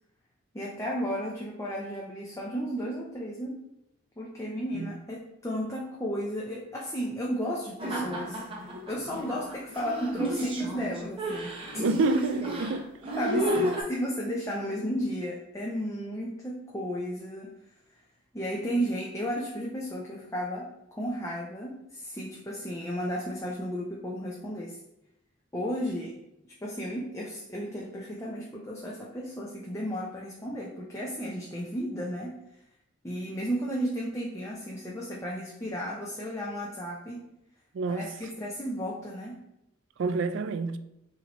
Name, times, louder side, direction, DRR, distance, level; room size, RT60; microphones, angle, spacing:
voice 1, 0.5-3.6 4.2-11.8 13.2-17.5 18.3-24.8 25.5-26.2 26.4-32.4 33.0-37.3 37.9-39.4, equal, 15° left, 0.6 m, -34 dB
sound 1, 7.8-13.8, right 1 dB, 25° right, 1.0 m, -32 dB
voice 2, 11.8-12.9 13.6-13.7 37.7-38.0 40.0-40.8, right 3 dB, 65° right, 0.4 m, -28 dB
6.2 x 2.8 x 3.0 m
head